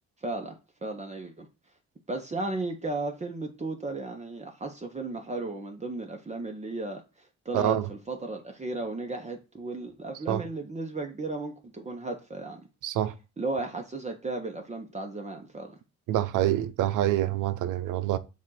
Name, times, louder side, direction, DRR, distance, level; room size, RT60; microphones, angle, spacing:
voice 1, 0.2-1.5 2.1-12.6 13.4-15.8, right 2 dB, 25° right, 1.1 m, -35 dB
voice 2, 7.5-7.9 10.3-10.4 12.8-13.1 16.1-18.2, right 13 dB, 85° right, 0.7 m, -26 dB
7.2 x 2.6 x 5.8 m
cardioid pair, 90°, 30 cm